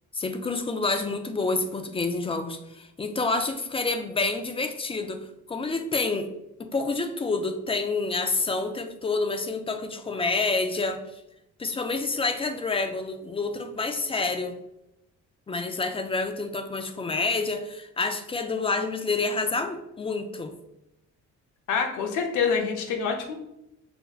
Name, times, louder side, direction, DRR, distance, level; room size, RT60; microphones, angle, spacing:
voice 1, 0.1-6.3 6.6-11.0 11.6-14.6 15.5-20.5, left 3 dB, 20° left, 7 dB, 0.3 m, -28 dB
voice 2, 21.7-23.3, left 6 dB, 80° left, 3 dB, 0.6 m, -26 dB
5.4 x 2.1 x 2.3 m, 0.86 s
cardioid pair, 90°, 30 cm